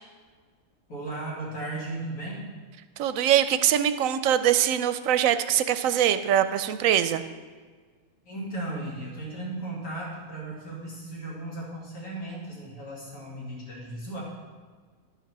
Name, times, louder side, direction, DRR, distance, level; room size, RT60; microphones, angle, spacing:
voice 1, 0.9-2.4 8.2-14.2, right 2 dB, 80° left, -5 dB, 3.1 m, -36 dB
voice 2, 3.0-7.2, right 10 dB, 75° right, 11 dB, 0.9 m, -23 dB
11.0 x 5.8 x 6.0 m, 1.5 s
omnidirectional pair, 1.5 m